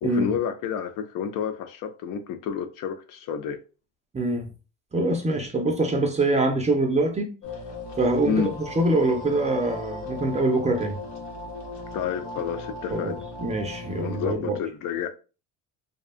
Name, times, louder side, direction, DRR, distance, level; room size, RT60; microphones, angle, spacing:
voice 1, 0.0-3.6 8.2-8.5 11.9-13.2 13.9-15.1, left 7 dB, 55° left, 0.4 m, -29 dB
voice 2, 4.1-4.5 4.9-7.3 8.0-8.3 8.8-11.0 12.9-14.6, right 2 dB, 20° right, 0.4 m, -24 dB
sound 1, 7.4-14.3, left 2 dB, 75° left, 0.9 m, -37 dB
2.7 x 2.2 x 2.4 m
cardioid pair, 105°, 38 cm